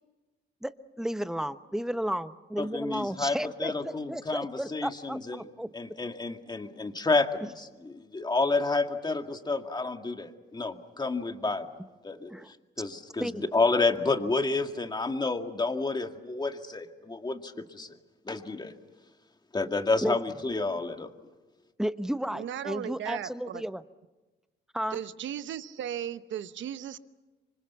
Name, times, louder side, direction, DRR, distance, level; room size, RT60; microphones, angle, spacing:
voice 1, 0.6-5.7 7.4-7.5 12.3-12.5 13.2-13.4 20.0-20.2 21.8-23.8 24.7-25.0, equal, 5° right, 11 dB, 1.1 m, -33 dB
voice 2, 2.6-5.4 5.7-11.7 12.0-12.3 12.8-17.9 18.3-18.7 19.5-21.1, left 3 dB, 20° left, 6 dB, 2.1 m, -30 dB
voice 3, 22.3-23.6 24.9-27.0, right 10 dB, 70° right, 12 dB, 1.1 m, -36 dB
27.0 x 25.0 x 7.1 m, 1.2 s
cardioid pair, 90°, 20 cm